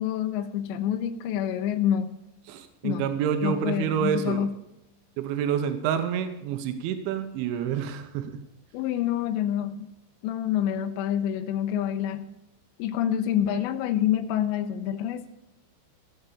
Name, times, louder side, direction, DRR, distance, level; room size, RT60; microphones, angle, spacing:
voice 1, 0.0-2.1 2.8-3.1 3.4-4.5 8.7-9.9 10.2-12.3 12.8-15.3, left 10 dB, 80° left, 7 dB, 2.8 m, -27 dB
voice 2, 2.5-4.5 5.2-8.4, right 8 dB, 90° right, 8 dB, 3.4 m, -28 dB
15.5 x 8.1 x 6.8 m, 0.86 s
omnidirectional pair, 5.3 m